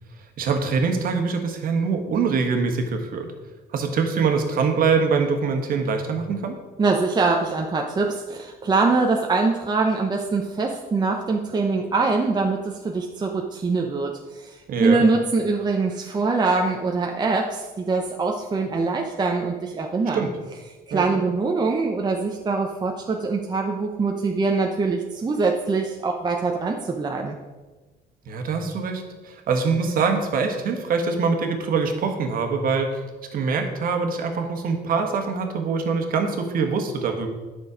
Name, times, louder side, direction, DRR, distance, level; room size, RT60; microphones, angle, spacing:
voice 1, 0.4-3.3 3.7-6.6 14.7-15.0 20.1-20.3 20.9-21.1 28.2-33.0 33.3-37.3, right 5 dB, 55° right, 4 dB, 1.5 m, -24 dB
voice 2, 6.8-20.3 20.9-27.4, right 3 dB, 25° right, 1 dB, 0.8 m, -23 dB
9.6 x 6.3 x 5.0 m, 1.2 s
cardioid pair, 110°, 17 cm